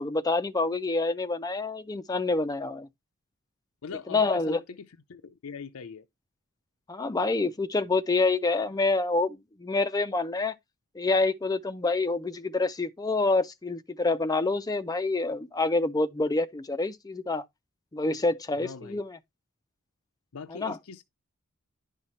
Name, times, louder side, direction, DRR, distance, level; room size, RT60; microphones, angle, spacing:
voice 1, 0.0-2.9 4.1-4.6 6.9-10.5 10.9-17.4 17.9-19.2 20.5-20.8, left 3 dB, 15° left, 0.4 m, -27 dB
voice 2, 3.8-4.6 5.1-6.0 18.6-19.0 20.3-21.0, left 5 dB, 80° left, 0.6 m, -41 dB
10.5 x 5.6 x 3.1 m
head